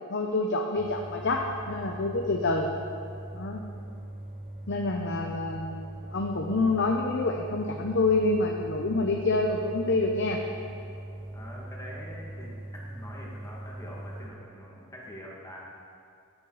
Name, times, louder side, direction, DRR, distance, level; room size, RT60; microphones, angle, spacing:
voice 1, 0.1-2.7 3.3-3.7 4.7-10.4, left 2 dB, 60° left, 1 dB, 0.8 m, -27 dB
sound 1, 0.7-14.3, right 1 dB, 40° right, 2.1 m, -41 dB
voice 2, 11.3-12.6 12.9-15.6, equal, 15° left, -4 dB, 2.2 m, -44 dB
14.0 x 9.7 x 4.1 m, 2.4 s
head